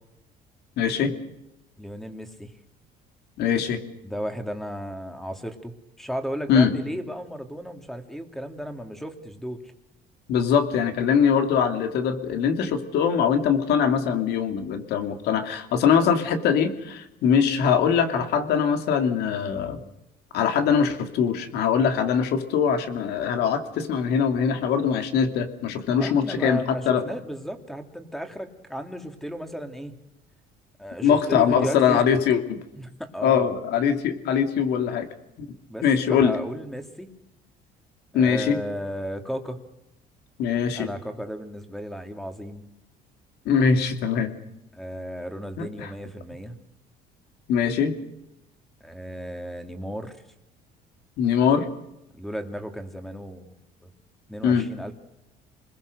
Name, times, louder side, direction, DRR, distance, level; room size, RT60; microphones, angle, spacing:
voice 1, 0.8-1.1 3.4-3.9 6.5-6.7 10.3-19.8 20.3-27.0 31.0-32.6 33.2-35.1 35.4-35.5 35.8-36.4 38.1-38.6 40.4-40.9 43.4-44.3 45.6-45.9 47.5-47.9 51.2-51.7 54.4-54.7, left 7 dB, 75° left, 7 dB, 2.8 m, -22 dB
voice 2, 1.8-2.5 4.0-9.7 26.0-29.9 30.8-32.1 32.7-33.5 35.7-37.1 38.1-39.6 40.7-42.6 44.7-46.6 48.8-50.2 52.1-53.5 53.8-53.9 54.3-54.9, equal, ahead, 6 dB, 2.5 m, -34 dB
28.0 x 21.0 x 6.6 m, 0.87 s
cardioid pair, 140°, 17 cm